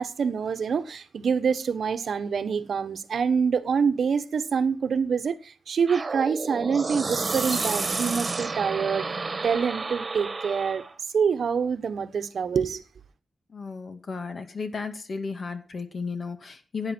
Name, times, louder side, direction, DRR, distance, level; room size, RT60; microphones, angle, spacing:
voice 1, 0.0-9.1 9.4-10.8 11.1-12.8, right 6 dB, 65° right, 1.2 m, -26 dB
sound 1, 5.9-10.9, right 3 dB, 30° right, 1.7 m, -30 dB
voice 2, 13.5-16.9, left 4 dB, 45° left, 2.0 m, -34 dB
15.5 x 9.8 x 4.5 m
wide cardioid pair, 120°, 0 cm